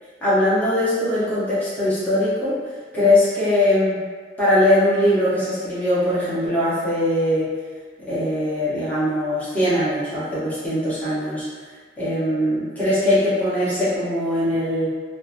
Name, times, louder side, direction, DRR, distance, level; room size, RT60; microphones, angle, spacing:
voice 1, 0.2-4.0 4.4-7.5 8.0-11.5 12.0-14.9, left 1 dB, 10° left, -12 dB, 0.7 m, -21 dB
2.8 x 2.1 x 2.4 m, 1.5 s
head